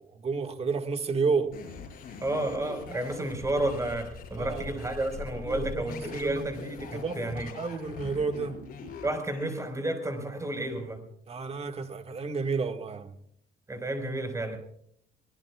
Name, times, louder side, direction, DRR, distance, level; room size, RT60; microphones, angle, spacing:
voice 1, 0.0-1.6 4.4-4.7 5.5-6.5 6.9-8.7 11.3-13.2, right 4 dB, 35° right, 1.9 m, -31 dB
sound 1, 1.5-9.6, left 5 dB, 60° left, 5.9 m, -42 dB
voice 2, 2.2-7.5 9.0-11.0 13.7-14.6, right 1 dB, 20° right, 4.9 m, -31 dB
25.0 x 19.5 x 2.4 m
cardioid pair, 110°, 17 cm